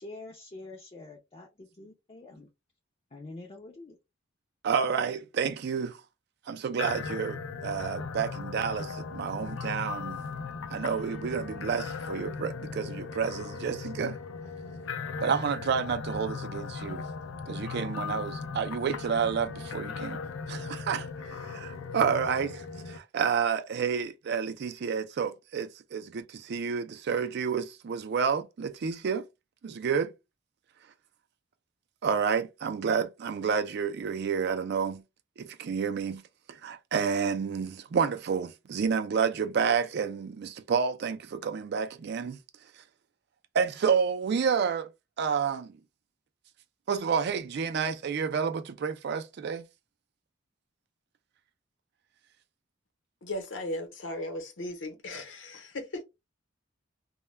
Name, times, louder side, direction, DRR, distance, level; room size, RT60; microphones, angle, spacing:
voice 1, 0.0-2.5 3.1-4.0, left 2 dB, 30° left, 0.4 m, -46 dB
voice 2, 4.6-6.0 6.5-10.2 10.7-14.2 15.2-17.0 17.5-20.2 20.5-29.3 29.6-30.1 32.0-35.0 35.4-36.2 36.5-42.4 43.5-44.9 45.2-45.7 46.9-49.6, right 6 dB, 55° right, 0.4 m, -30 dB
sound 1, 6.8-23.0, left 5 dB, 90° left, 0.4 m, -38 dB
voice 3, 53.2-56.0, left 1 dB, 70° left, 0.8 m, -36 dB
2.2 x 2.2 x 3.2 m
head